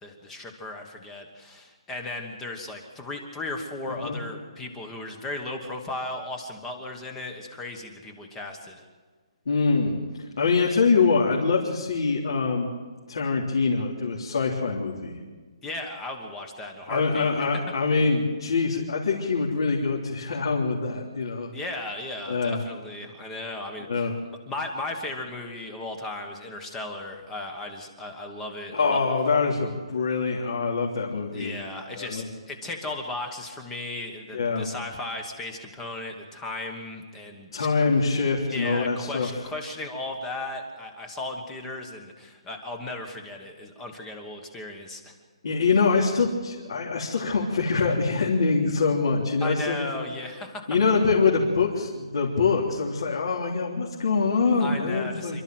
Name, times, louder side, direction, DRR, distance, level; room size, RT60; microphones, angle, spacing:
voice 1, 0.0-8.8 15.6-17.3 21.5-24.1 24.5-29.0 31.3-37.7 38.5-45.1 49.4-50.7 54.6-55.4, left 2 dB, 5° left, 4 dB, 1.3 m, -36 dB
voice 2, 9.4-9.9 10.4-12.7 13.1-15.1 16.9-21.5 22.3-22.6 23.9-24.1 28.7-31.6 31.9-32.3 34.3-34.7 37.5-39.3 45.4-49.9 50.7-55.4, left 4 dB, 60° left, -4 dB, 3.4 m, -24 dB
27.5 x 12.5 x 7.8 m, 1.5 s
hypercardioid pair, 180°, 3 cm